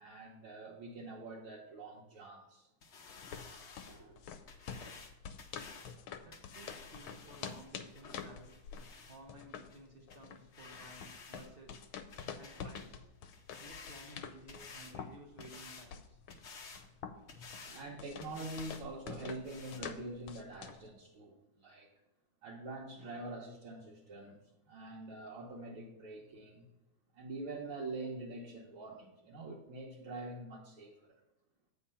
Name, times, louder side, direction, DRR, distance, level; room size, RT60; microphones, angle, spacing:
voice 1, 0.0-2.7 3.9-4.3 17.6-21.9 22.4-26.7 27.1-30.9, right 2 dB, 85° right, -5 dB, 2.1 m, -45 dB
sound 1, 2.8-9.2 9.7-9.8 10.1-10.2 10.5-11.5 11.7-12.9 13.2-15.0 15.4-15.9 16.3-16.8 17.3-17.9 18.2-18.8 19.1-19.2 19.4-19.8, left 4 dB, 55° left, 0.7 m, -53 dB
sound 2, 3.1-20.9, left 7 dB, 80° left, 1.4 m, -48 dB
voice 2, 6.2-8.6 9.1-11.8 12.3-13.1 13.6-16.2, right 1 dB, 50° right, 0 dB, 0.6 m, -55 dB
8.6 x 4.2 x 5.6 m, 0.95 s
omnidirectional pair, 2.3 m